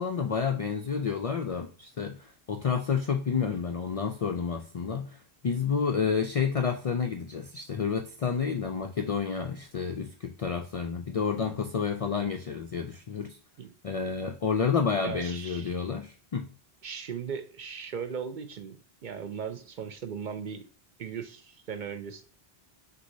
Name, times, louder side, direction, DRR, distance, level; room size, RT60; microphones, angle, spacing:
voice 1, 0.0-13.4 13.8-16.5, left 6 dB, 55° left, 5 dB, 0.4 m, -30 dB
voice 2, 15.0-15.8 16.8-20.7 21.0-22.2, right 6 dB, 55° right, 8 dB, 0.6 m, -38 dB
6.0 x 2.7 x 2.6 m, 0.40 s
omnidirectional pair, 1.1 m